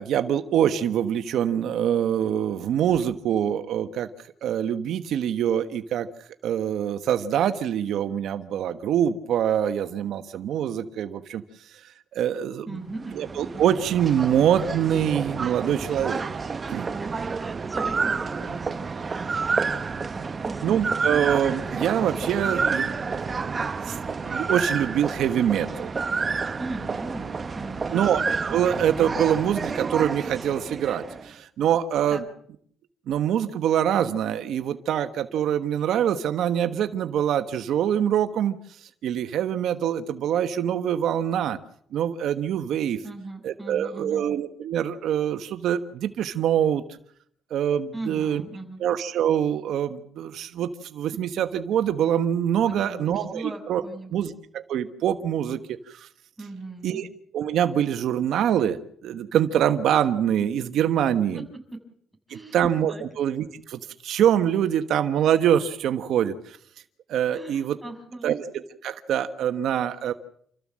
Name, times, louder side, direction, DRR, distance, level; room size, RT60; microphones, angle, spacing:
voice 1, 0.0-4.1 4.4-6.1 6.4-11.4 11.8-12.8 13.1-16.2 16.7-16.9 20.6-25.9 27.9-32.2 33.1-41.6 41.9-43.0 43.4-46.8 47.5-48.4 48.8-53.8 54.1-56.1 56.8-57.1 57.3-58.8 59.0-61.4 62.3-66.6 67.1-67.8 68.2-68.4 68.8-70.1, right 9 dB, 75° right, 9 dB, 1.2 m, -25 dB
voice 2, 12.7-13.2 16.6-21.1 26.6-28.0 32.1-32.2 43.0-44.3 47.9-48.8 52.6-54.2 56.4-57.0 61.3-61.6 62.3-63.0 67.3-68.3, right 2 dB, 10° right, 3 dB, 6.9 m, -39 dB
sound 1, 12.9-31.3, right 4 dB, 35° right, 1.3 m, -29 dB
29.0 x 14.5 x 7.5 m, 0.65 s
cardioid pair, 90°, 0 cm